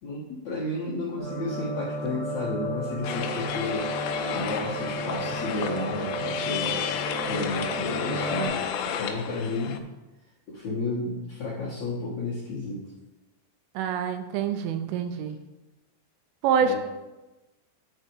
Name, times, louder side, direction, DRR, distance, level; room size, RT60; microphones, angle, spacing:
voice 1, 0.0-3.9 4.3-6.8 7.2-9.8 10.5-12.9 16.6-16.8, left 2 dB, 65° left, -9 dB, 1.7 m, -32 dB
sound 1, 1.2-8.5, right 1 dB, 40° right, 0.9 m, -34 dB
sound 2, 3.0-9.8, left 8 dB, 85° left, 2.4 m, -32 dB
voice 2, 13.8-15.4 16.4-16.8, right 8 dB, 85° right, 8 dB, 3.1 m, -26 dB
11.0 x 4.4 x 4.6 m, 1.1 s
omnidirectional pair, 5.7 m